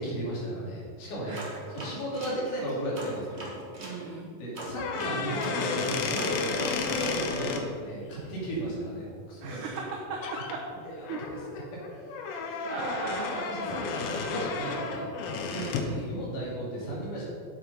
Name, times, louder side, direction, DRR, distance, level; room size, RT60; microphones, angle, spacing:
voice 1, 0.0-1.4 1.7-3.4 4.4-9.8 10.8-12.3 13.4-15.1 15.9-17.3, right 1 dB, 60° left, -6 dB, 4.1 m, -35 dB
voice 2, 1.2-1.5 3.8-4.3 9.4-10.2 11.1-11.2 12.6-13.5 15.5-16.1, right 4 dB, 65° right, -3 dB, 2.3 m, -37 dB
sound 1, 1.3-4.0 4.5-7.2, right 1 dB, 90° right, 0.5 m, -40 dB
sound 2, 4.7-7.6 9.8-9.9 10.2-10.5 11.0-16.0, left 5 dB, 80° left, 2.6 m, -32 dB
8.2 x 7.6 x 5.4 m, 2.2 s
omnidirectional pair, 4.2 m